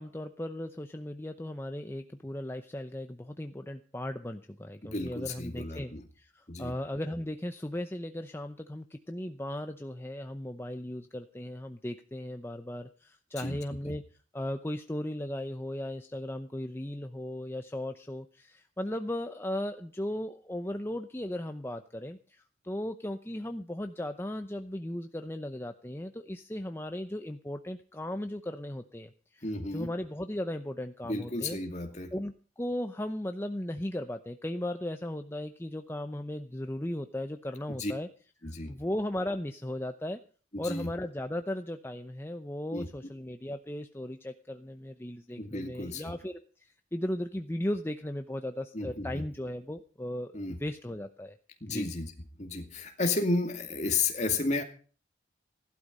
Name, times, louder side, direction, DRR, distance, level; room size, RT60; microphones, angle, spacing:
voice 1, 0.0-14.0 14.3-31.6 32.1-38.1 38.4-40.2 40.6-51.3 51.7-51.9, left 1 dB, 10° left, 7 dB, 0.7 m, -37 dB
voice 2, 4.8-6.0 6.5-6.7 13.4-13.6 29.4-29.9 31.0-32.1 37.7-37.9 38.4-38.7 40.5-40.9 42.7-42.9 45.4-46.0 48.7-49.2 50.3-50.6 51.6-52.1 52.4-54.6, left 3 dB, 35° left, 5 dB, 2.4 m, -32 dB
16.0 x 12.0 x 5.5 m, 0.40 s
head